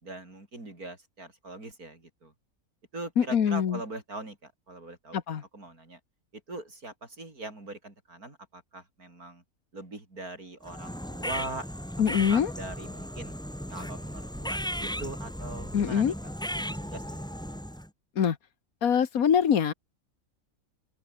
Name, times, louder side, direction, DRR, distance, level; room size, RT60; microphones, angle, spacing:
voice 1, 0.0-2.3 2.9-5.2 5.5-6.0 6.3-9.4 9.7-11.7 12.3-13.3 13.7-16.1 16.5-17.3, right 2 dB, 85° right, 6.4 m, -41 dB
voice 2, 3.2-3.8 5.1-5.4 12.0-12.5 15.7-16.1 18.2-18.4 18.8-19.7, left 8 dB, 75° left, 1.7 m, -24 dB
sound 1, 10.6-17.9, equal, 5° left, 3.5 m, -36 dB
open air
omnidirectional pair, 1.5 m